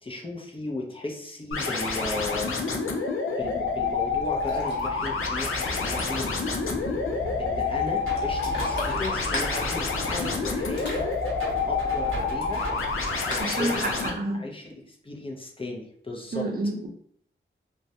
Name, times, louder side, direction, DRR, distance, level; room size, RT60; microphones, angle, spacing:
voice 1, 0.0-2.5 3.4-6.5 7.4-11.1 11.7-12.6 13.1-13.9 14.3-16.5, left 2 dB, 25° left, -1 dB, 0.5 m, -35 dB
sound 1, 1.5-14.1, left 4 dB, 85° left, 0.4 m, -28 dB
Ocean, 3.4-13.4, left 1 dB, 55° left, 0.9 m, -37 dB
sound 2, 8.0-13.2, right 1 dB, 85° right, 0.7 m, -37 dB
voice 2, 13.4-14.4 16.3-16.9, right 2 dB, 45° right, 1 dB, 0.5 m, -29 dB
2.2 x 2.1 x 2.7 m, 0.64 s
cardioid pair, 50°, 21 cm